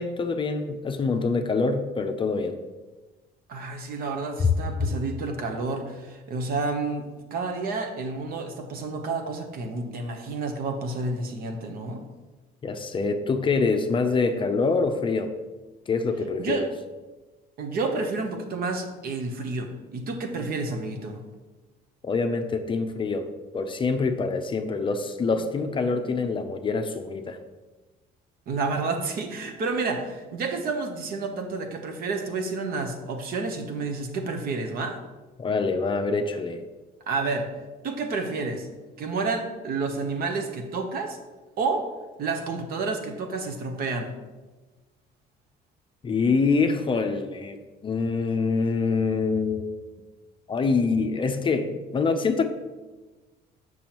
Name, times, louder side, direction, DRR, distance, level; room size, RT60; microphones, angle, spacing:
voice 1, 0.0-2.6 4.4-4.5 12.6-15.3 15.9-16.7 22.0-27.4 35.4-36.6 46.0-49.8 50.5-52.5, left 4 dB, 30° left, 7 dB, 0.5 m, -25 dB
voice 2, 3.5-12.0 16.4-16.7 17.6-21.2 28.5-35.0 37.1-37.5 37.8-38.7 39.0-41.2 41.6-41.9 42.2-44.1, right 3 dB, 60° right, 5 dB, 0.9 m, -30 dB
7.0 x 6.1 x 3.0 m, 1.2 s
cardioid pair, 110°, 17 cm